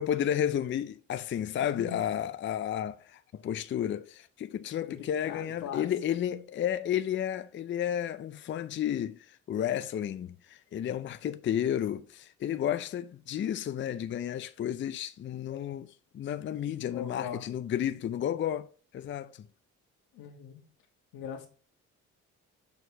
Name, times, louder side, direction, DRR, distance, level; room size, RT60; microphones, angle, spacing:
voice 1, 0.0-18.7 18.9-19.5, left 10 dB, 40° left, 0.4 m, -32 dB
voice 2, 1.8-2.2 4.8-5.9 6.2-6.4 16.9-17.4 20.1-20.6 21.1-21.5, left 8 dB, 90° left, 1.6 m, -40 dB
6.8 x 4.5 x 3.3 m
cardioid pair, 85°, 31 cm